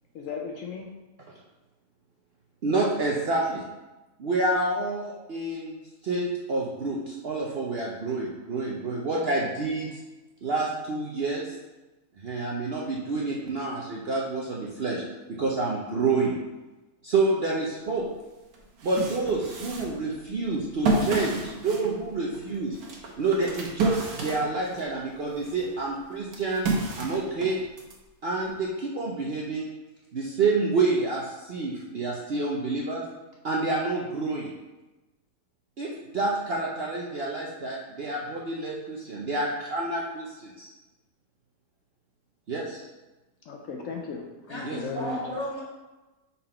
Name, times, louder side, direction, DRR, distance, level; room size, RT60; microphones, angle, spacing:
voice 1, 0.1-0.9 43.5-45.2, left 5 dB, 65° left, 1 dB, 1.0 m, -36 dB
voice 2, 2.6-3.6 4.2-5.8 6.0-10.0 10.4-11.5 12.2-15.0 15.3-16.3 17.0-18.1 18.8-22.8 23.2-26.7 26.9-27.6 28.2-29.7 30.1-33.0 33.4-34.5 35.8-40.7 42.5-42.8 44.6-44.8, right 3 dB, 55° right, -3 dB, 0.8 m, -28 dB
sound 1, 18.0-18.1 18.5-24.9 25.4-28.0, right 2 dB, 80° right, 1.4 m, -31 dB
voice 3, 44.5-45.6, equal, 20° left, -7 dB, 2.0 m, -34 dB
5.5 x 4.1 x 4.3 m, 1.1 s
omnidirectional pair, 1.5 m